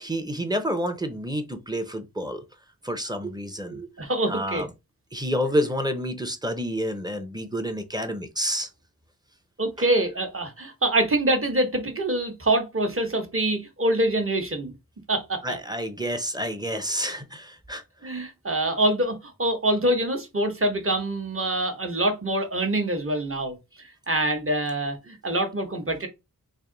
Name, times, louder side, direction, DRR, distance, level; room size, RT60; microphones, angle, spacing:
voice 1, 0.0-2.4 2.8-3.9 4.3-4.7 5.1-8.7 15.4-17.8, equal, 10° right, 0.7 m, -29 dB
voice 2, 4.0-4.7 9.6-14.7 15.1-15.6 18.0-23.6 24.1-26.1, right 1 dB, 35° right, 1.1 m, -25 dB
3.4 x 2.6 x 3.8 m
wide cardioid pair, 55°, 37 cm